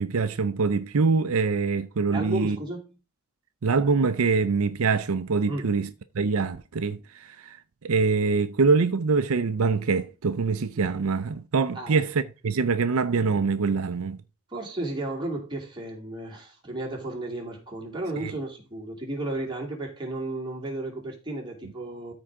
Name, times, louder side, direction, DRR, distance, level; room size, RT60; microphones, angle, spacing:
voice 1, 0.0-2.6 3.6-5.9 6.1-14.2 18.2-18.3, right 4 dB, 80° right, 0.5 m, -24 dB
voice 2, 2.1-2.8 5.5-5.7 11.7-12.0 14.5-22.1, right 2 dB, 20° right, 2.5 m, -33 dB
13.0 x 4.7 x 3.7 m
head